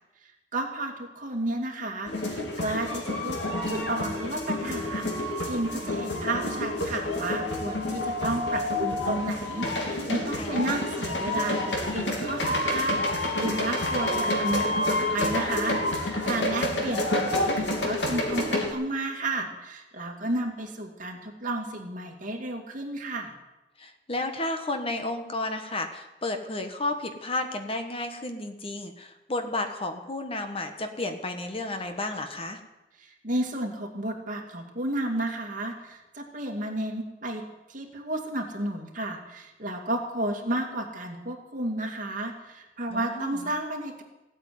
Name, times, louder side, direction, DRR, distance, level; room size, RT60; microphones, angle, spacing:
voice 1, 0.5-23.3 33.0-37.4 37.7-44.0, right 1 dB, 50° right, 2 dB, 2.5 m, -32 dB
sound 1, 2.1-18.7, left 1 dB, 85° left, 3.0 m, -28 dB
voice 2, 16.4-16.9 23.8-32.6 42.9-43.5, left 2 dB, 35° left, 6 dB, 1.4 m, -32 dB
16.0 x 9.1 x 9.5 m, 1.0 s
head